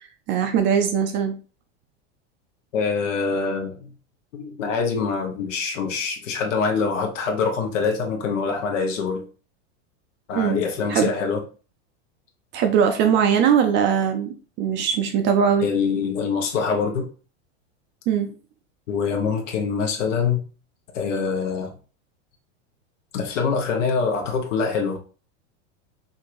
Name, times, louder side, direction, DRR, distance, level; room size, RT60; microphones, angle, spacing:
voice 1, 0.3-1.4 10.3-10.6 10.9-11.1 12.5-15.7 18.1-18.3, right 7 dB, 30° right, 6 dB, 0.4 m, -20 dB
voice 2, 2.7-3.9 4.3-9.2 10.3-11.4 15.6-17.1 18.9-20.4 20.9-21.7 23.1-25.0, left 5 dB, 85° left, 2 dB, 1.0 m, -24 dB
4.5 x 2.7 x 2.5 m, 0.36 s
supercardioid pair, 125°, 37 cm